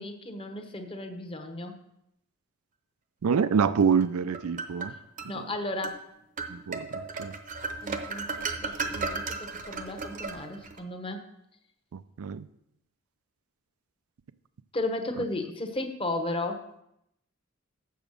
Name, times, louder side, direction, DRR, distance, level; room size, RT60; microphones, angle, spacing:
voice 1, 0.0-1.7 5.3-6.0 7.8-11.2 14.7-16.7, left 2 dB, 25° left, 5 dB, 0.9 m, -34 dB
voice 2, 3.2-4.9 5.3-5.5 6.5-7.4 11.9-12.5, right 6 dB, 80° right, 13 dB, 0.4 m, -26 dB
sound 1, 4.0-5.3 5.8-6.0 6.4-10.8, right 4 dB, 40° right, 0.8 m, -35 dB
7.1 x 7.0 x 6.3 m, 0.79 s
head